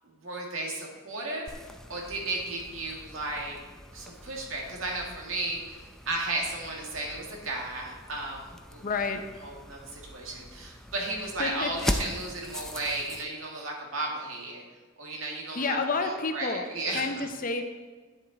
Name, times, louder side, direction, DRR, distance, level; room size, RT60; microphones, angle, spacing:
voice 1, 0.2-1.5 1.9-3.6 3.9-8.9 9.4-14.6 15.0-17.3, right 2 dB, 90° right, -1 dB, 1.9 m, -34 dB
sound 1, 1.5-13.2, equal, 5° left, 0.4 m, -40 dB
voice 2, 8.8-9.2 11.4-11.9 15.5-16.6 16.9-17.6, left 4 dB, 45° left, 6 dB, 0.7 m, -30 dB
9.6 x 7.0 x 3.9 m, 1.3 s
head